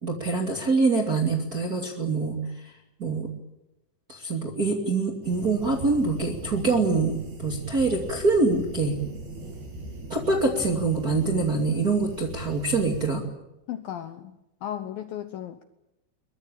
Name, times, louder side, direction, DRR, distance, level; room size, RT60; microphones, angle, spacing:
voice 1, 0.0-2.4 3.0-3.3 4.1-9.0 10.1-13.2, right 3 dB, 30° right, 2 dB, 2.0 m, -25 dB
sound 1, 5.2-13.0, right 2 dB, 55° right, 10.0 m, -39 dB
voice 2, 13.7-15.6, left 11 dB, 75° left, 9 dB, 2.1 m, -35 dB
22.5 x 22.5 x 8.9 m, 0.92 s
omnidirectional pair, 5.4 m